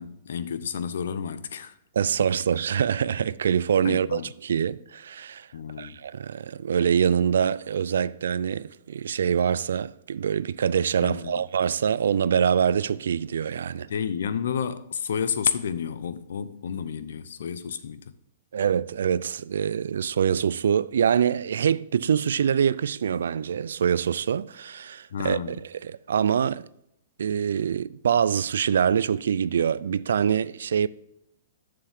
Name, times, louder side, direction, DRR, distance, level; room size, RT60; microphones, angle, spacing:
voice 1, 0.0-1.7 3.8-4.3 5.5-6.0 11.0-11.3 13.9-18.1 25.1-25.6, left 7 dB, 70° left, 0.7 m, -30 dB
voice 2, 2.0-5.5 5.8-13.9 18.5-25.6 25.8-26.6 27.2-30.9, right 8 dB, 90° right, 0.3 m, -24 dB
7.3 x 6.7 x 3.5 m
hypercardioid pair, 175°, 0 cm